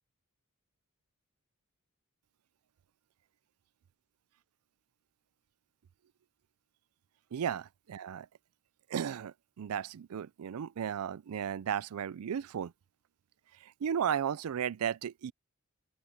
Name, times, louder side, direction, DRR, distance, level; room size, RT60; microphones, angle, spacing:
voice 1, 7.3-8.3 8.9-12.7 13.6-15.3, right 8 dB, 75° right, 0.4 m, -35 dB
open air
head